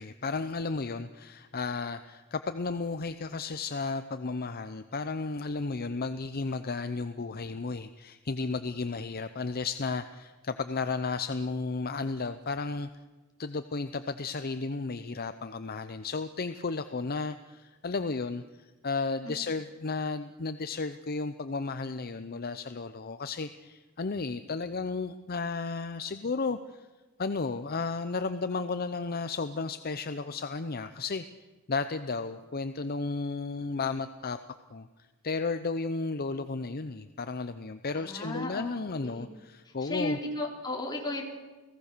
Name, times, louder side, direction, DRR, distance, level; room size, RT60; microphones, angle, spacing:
voice 1, 0.0-12.9 13.4-26.9 27.2-31.2 31.7-34.4 34.7-34.9 35.2-40.2, left 4 dB, 45° left, 10 dB, 0.7 m, -33 dB
voice 2, 37.9-39.3 39.6-41.2, left 2 dB, 20° left, 0 dB, 3.9 m, -35 dB
29.5 x 18.0 x 6.8 m, 1.2 s
head